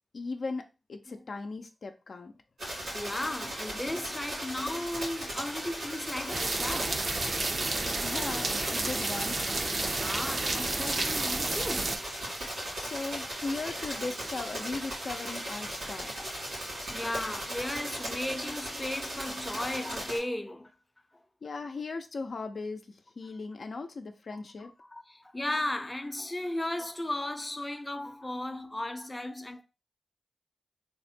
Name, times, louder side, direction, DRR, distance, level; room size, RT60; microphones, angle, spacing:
voice 1, 0.1-2.3 7.9-9.4 12.8-16.3 21.4-24.7, left 3 dB, 70° left, 0.4 m, -38 dB
sound 1, 2.6-20.2, right 1 dB, 85° right, 2.2 m, -37 dB
voice 2, 2.9-7.0 9.8-12.1 16.1-16.3 16.7-20.7 24.6-29.6, left 1 dB, 20° left, 0.5 m, -35 dB
sound 2, 6.3-12.0, right 2 dB, 50° right, 0.5 m, -31 dB
3.5 x 2.1 x 4.2 m
cardioid pair, 65°, 0 cm